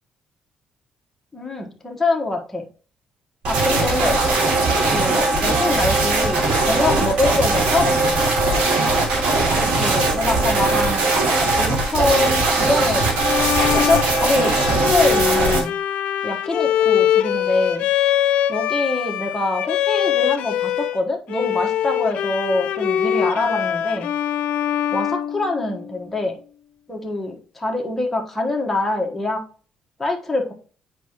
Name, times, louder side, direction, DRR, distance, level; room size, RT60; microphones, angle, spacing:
voice 1, 1.3-2.6 3.4-4.2 4.9-8.3 9.6-11.2 11.6-13.1 13.5-15.7 16.2-17.9 18.5-24.1 24.9-26.4 26.9-29.4 30.0-30.5, left 2 dB, 10° left, -1 dB, 1.4 m, -24 dB
sound 1, 3.4-15.6, right 2 dB, 90° right, 2.3 m, -19 dB
Bowed string instrument, 13.1-21.0 21.3-26.1, left 10 dB, 75° left, 0.6 m, -23 dB
8.2 x 4.7 x 3.0 m, 0.40 s
cardioid pair, 105°, 2 cm